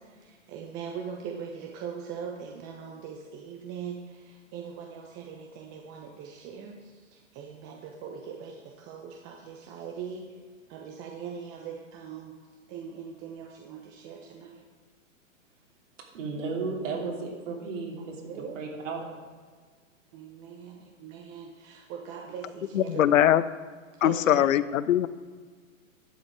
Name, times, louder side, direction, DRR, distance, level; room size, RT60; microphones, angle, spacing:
voice 1, 0.0-10.4 10.7-12.4 12.7-14.6 18.0-18.7 20.1-23.2 23.9-24.5, right 7 dB, 30° right, 1 dB, 1.0 m, -41 dB
voice 2, 16.0-19.0, right 4 dB, 65° right, -2 dB, 3.0 m, -34 dB
voice 3, 22.7-23.4 24.0-25.1, left 11 dB, 70° left, 16 dB, 0.6 m, -21 dB
11.5 x 7.8 x 4.7 m, 1.5 s
hypercardioid pair, 125°, 40 cm